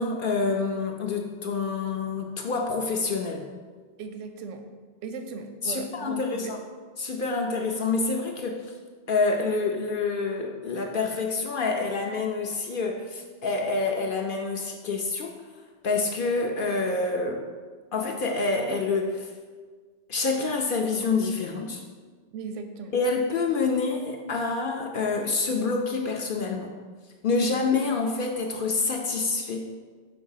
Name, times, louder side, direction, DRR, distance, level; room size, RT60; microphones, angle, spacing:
voice 1, 0.0-3.4 5.6-6.6 7.0-8.6 9.1-15.3 15.8-17.5 17.9-19.3 20.1-21.8 22.9-26.7 27.2-29.7, left 4 dB, 60° left, 2 dB, 0.6 m, -27 dB
voice 2, 4.0-4.6 5.0-6.5 22.3-22.9 27.3-27.6, right 5 dB, 85° right, 7 dB, 1.0 m, -37 dB
5.2 x 3.5 x 5.5 m, 1.5 s
omnidirectional pair, 1.2 m